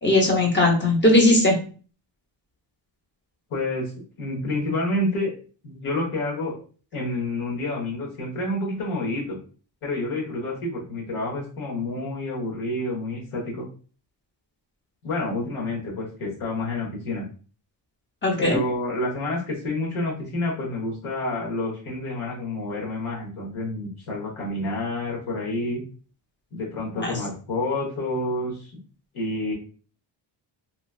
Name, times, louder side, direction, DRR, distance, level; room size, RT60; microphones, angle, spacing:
voice 1, 0.0-1.5 18.2-18.6 27.0-27.2, left 1 dB, 25° left, 0 dB, 0.7 m, -19 dB
voice 2, 3.5-3.9 4.2-5.3 5.6-6.6 6.9-9.4 9.8-13.7 15.0-17.3 18.4-25.8 26.5-28.7 29.1-29.5, left 2 dB, 90° left, -2 dB, 1.3 m, -28 dB
3.0 x 2.3 x 2.3 m, 0.39 s
wide cardioid pair, 150°, 48 cm